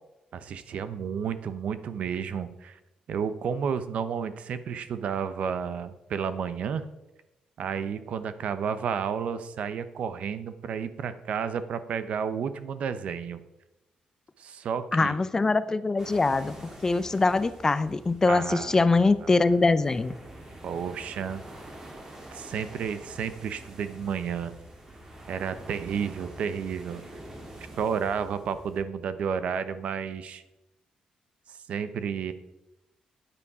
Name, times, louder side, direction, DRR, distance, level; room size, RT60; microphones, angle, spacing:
voice 1, 0.3-2.8 3.1-6.8 7.6-13.4 14.4-15.2 18.3-18.9 19.2-19.3 20.6-21.4 22.3-24.5 25.3-27.0 27.8-30.4 31.5-32.3, right 7 dB, 65° right, 12 dB, 0.8 m, -31 dB
voice 2, 14.9-20.2, left 3 dB, 25° left, 14 dB, 0.5 m, -23 dB
sound 1, 16.0-28.8, right 1 dB, 25° right, 2.7 m, -46 dB
9.9 x 8.5 x 4.8 m, 0.97 s
cardioid pair, 100°, 2 cm